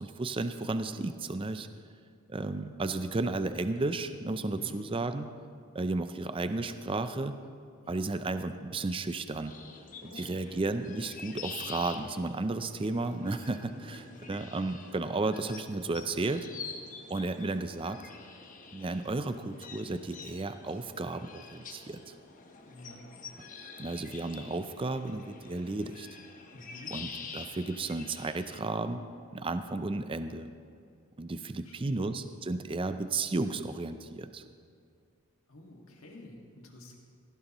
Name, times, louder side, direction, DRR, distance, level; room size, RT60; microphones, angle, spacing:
voice 1, 0.0-1.7 2.3-5.3 5.7-7.4 7.9-9.5 10.0-16.5 17.1-18.0 18.7-22.2 23.8-26.1 26.9-29.0 29.3-30.5 31.2-34.4, right 2 dB, 25° right, 10 dB, 0.4 m, -33 dB
voice 2, 4.4-4.8 7.8-8.1 10.0-10.6 13.5-13.8 14.1-14.4 22.6-23.0 26.5-27.0 31.6-32.1 35.5-37.0, left 1 dB, 65° left, 0 dB, 2.0 m, -50 dB
sound 1, 9.5-28.6, left 5 dB, 35° left, 1.0 m, -47 dB
17.0 x 15.0 x 3.0 m, 2.3 s
head